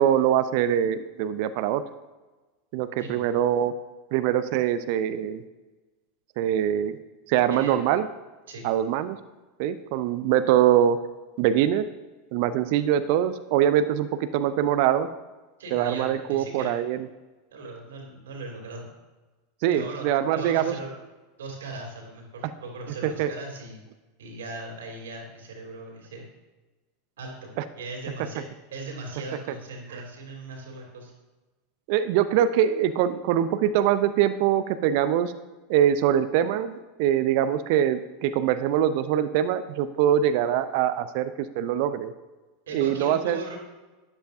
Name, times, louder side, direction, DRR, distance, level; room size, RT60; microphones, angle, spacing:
voice 1, 0.0-1.8 2.7-3.8 4.1-5.4 6.4-7.0 7.3-8.1 8.6-9.2 9.6-11.0 11.4-11.9 12.3-15.1 15.7-17.1 19.6-20.8 23.0-23.3 27.6-27.7 31.9-35.3 35.7-42.1 42.7-43.4, right 10 dB, 55° right, 13 dB, 0.5 m, -23 dB
voice 2, 15.6-16.7 17.5-18.9 19.7-20.1 20.3-20.9 21.4-23.8 24.2-26.3 27.2-28.4 28.7-31.1 42.7-43.6, right 2 dB, 70° right, 1 dB, 2.9 m, -38 dB
13.0 x 10.5 x 2.7 m, 1.2 s
figure-of-eight pair, 85°, 0 cm